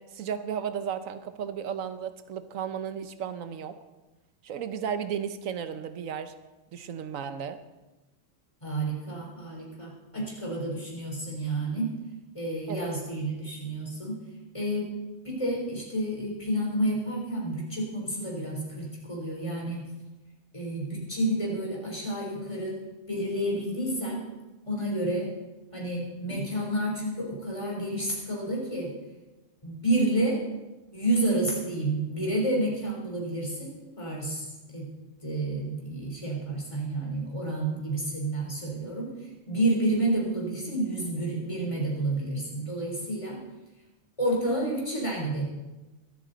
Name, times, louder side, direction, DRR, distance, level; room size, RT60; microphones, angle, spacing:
voice 1, 0.0-3.8 4.4-6.3 6.7-7.6 12.7-12.9, right 8 dB, 85° right, 11 dB, 1.2 m, -34 dB
voice 2, 8.6-11.9 12.3-14.2 14.5-15.0 15.2-19.8 20.5-22.8 23.1-24.2 24.7-25.3 25.7-28.9 29.6-30.4 30.9-34.9 35.2-43.4 44.2-45.5, right 1 dB, 25° left, -3 dB, 3.7 m, -30 dB
23.0 x 8.4 x 4.0 m, 1.1 s
omnidirectional pair, 1.3 m